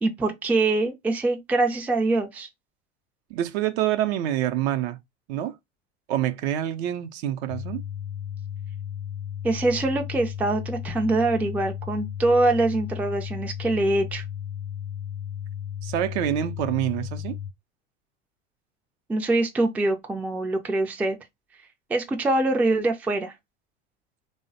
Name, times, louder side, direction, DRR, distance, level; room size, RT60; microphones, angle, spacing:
voice 1, 0.0-2.5 9.4-14.2 19.1-21.2 21.9-23.3, right 2 dB, 5° right, 0.3 m, -24 dB
voice 2, 3.3-5.0 5.3-5.6 6.1-7.8 15.8-17.4, right 12 dB, 65° right, 0.5 m, -26 dB
sound 1, 7.5-17.5, left 9 dB, 70° left, 0.6 m, -34 dB
3.2 x 2.0 x 2.5 m
hypercardioid pair, 100°, 36 cm